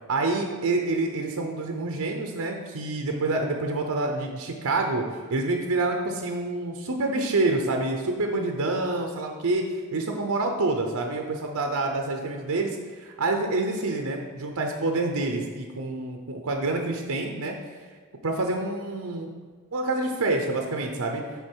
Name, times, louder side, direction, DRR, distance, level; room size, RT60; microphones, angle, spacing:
voice 1, 0.1-9.7 9.9-17.6 18.2-19.3 19.7-21.2, right 2 dB, 75° right, 3 dB, 0.8 m, -27 dB
8.1 x 5.2 x 4.6 m, 1.6 s
head